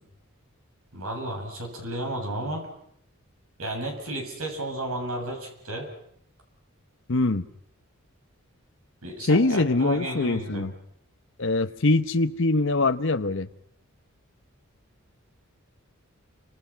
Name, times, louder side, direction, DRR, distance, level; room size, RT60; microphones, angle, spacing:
voice 1, 0.9-2.7 3.6-5.9 9.0-10.7, right 1 dB, 80° right, 7.7 m, -33 dB
voice 2, 7.1-7.4 9.2-10.7 11.4-13.5, left 2 dB, 60° left, 1.0 m, -23 dB
29.5 x 26.0 x 5.8 m
head